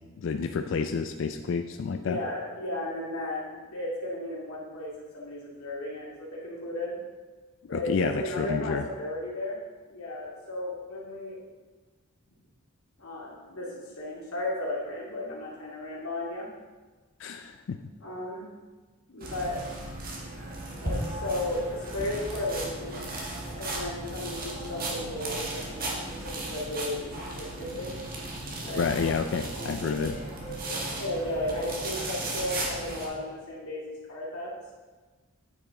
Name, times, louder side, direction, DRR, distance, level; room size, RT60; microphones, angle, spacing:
voice 1, 0.2-2.2 7.7-8.9 17.2-17.8 28.7-30.2, left 5 dB, 55° left, 7 dB, 0.3 m, -29 dB
voice 2, 1.9-3.4 3.7-7.0 7.7-9.6 9.9-11.4 13.0-16.5 18.0-18.4 19.1-19.6 20.8-23.1 23.5-27.9 28.6-28.9 29.4-29.9 31.0-34.5, left 1 dB, 80° left, -4 dB, 2.3 m, -34 dB
sound 1, 19.2-33.1, right 2 dB, 40° right, 1.4 m, -36 dB
8.9 x 6.0 x 3.9 m, 1.3 s
head